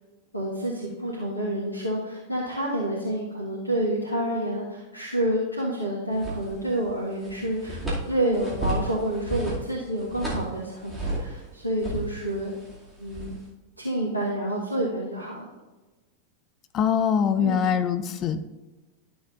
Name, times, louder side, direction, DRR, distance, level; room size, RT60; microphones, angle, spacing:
voice 1, 0.3-7.8 8.1-12.5 13.0-13.3 13.8-15.5 17.4-17.6, right 1 dB, 85° left, -6 dB, 1.5 m, -28 dB
sound 1, 6.1-6.9 7.2-11.4 11.8-13.5, right 1 dB, 10° right, 2.4 m, -33 dB
voice 2, 16.7-18.5, left 7 dB, 30° left, 11 dB, 0.6 m, -23 dB
12.0 x 6.7 x 2.6 m, 1.2 s
figure-of-eight pair, 90°, 0 cm